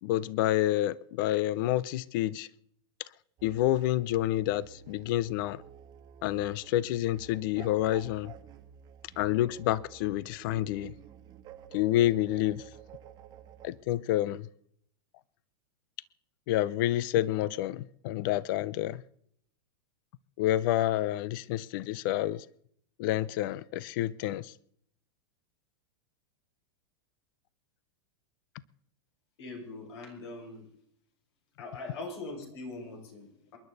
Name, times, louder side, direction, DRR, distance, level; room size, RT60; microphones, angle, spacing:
voice 1, 0.0-2.5 3.4-5.6 6.2-8.3 9.2-10.9 11.7-12.6 13.6-14.5 16.5-19.0 20.4-22.5 23.0-24.5, left 14 dB, 50° left, 0.6 m, -28 dB
sound 1, 3.4-13.7, right 9 dB, 30° right, 1.3 m, -51 dB
voice 2, 29.4-30.7 31.6-33.6, left 2 dB, 70° left, 6.2 m, -42 dB
28.0 x 11.0 x 4.0 m
supercardioid pair, 150°, 14 cm